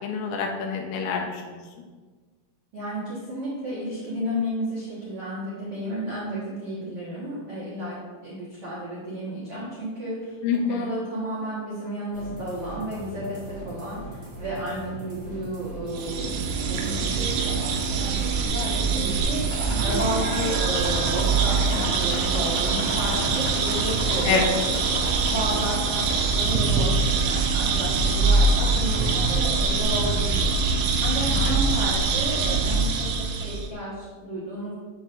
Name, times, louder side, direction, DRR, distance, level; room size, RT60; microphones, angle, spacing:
voice 1, 0.0-1.6 10.4-10.9 24.2-24.6 31.3-31.6, left 5 dB, 85° left, 3 dB, 2.7 m, -26 dB
voice 2, 2.7-10.4 10.7-34.7, equal, 75° right, -9 dB, 1.4 m, -32 dB
sound 1, 12.1-26.6, right 1 dB, 40° right, 2.8 m, -39 dB
sound 2, 15.9-33.7, right 4 dB, 90° right, 3.2 m, -24 dB
sound 3, 19.5-26.5 27.0-27.6 28.4-28.5 28.9-29.0, left 1 dB, 45° left, 1.1 m, -35 dB
7.7 x 7.2 x 2.6 m, 1.4 s
omnidirectional pair, 5.4 m